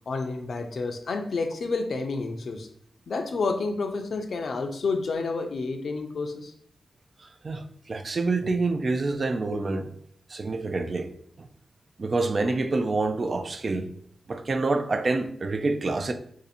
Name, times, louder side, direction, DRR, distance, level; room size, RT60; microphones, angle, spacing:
voice 1, 0.1-2.7 3.1-6.5, left 3 dB, 65° left, 0.4 m, -29 dB
voice 2, 7.4-9.9 10.3-11.1 12.0-13.9 14.3-16.1, right 3 dB, 45° right, 0.3 m, -27 dB
2.6 x 2.5 x 4.1 m
wide cardioid pair, 95°, 0 cm